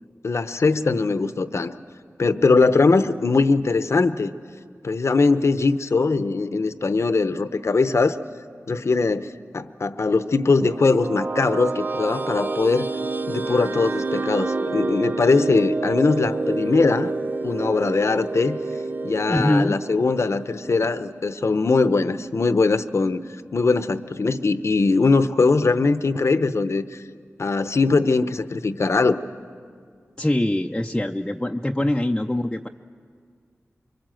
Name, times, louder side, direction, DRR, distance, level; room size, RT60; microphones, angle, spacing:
voice 1, 0.2-1.7 2.2-4.3 4.8-8.2 8.7-12.9 13.3-17.1 17.4-18.6 19.0-23.3 23.5-27.0 27.4-29.2, left 3 dB, 65° left, 12 dB, 0.8 m, -21 dB
sound 1, 10.4-21.2, right 3 dB, 40° right, 0.5 m, -29 dB
voice 2, 19.3-19.8 30.2-32.7, left 1 dB, 15° left, 2 dB, 0.6 m, -23 dB
24.5 x 23.5 x 7.7 m, 2.1 s
wide cardioid pair, 60°, 5 cm